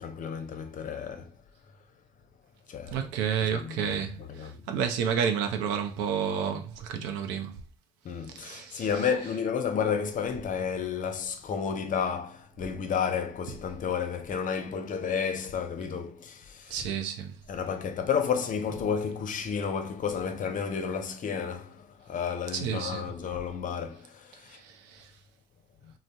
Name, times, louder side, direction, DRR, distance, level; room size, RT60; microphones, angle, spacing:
voice 1, 0.0-1.4 2.7-3.0 3.5-4.6 8.0-16.9 17.5-24.6, left 6 dB, 45° left, 0.6 m, -31 dB
voice 2, 2.9-7.6 8.3-8.9 16.7-17.3 22.5-23.1 24.5-25.1, right 7 dB, 80° right, 0.5 m, -31 dB
2.6 x 2.0 x 3.3 m
hypercardioid pair, 60°, 18 cm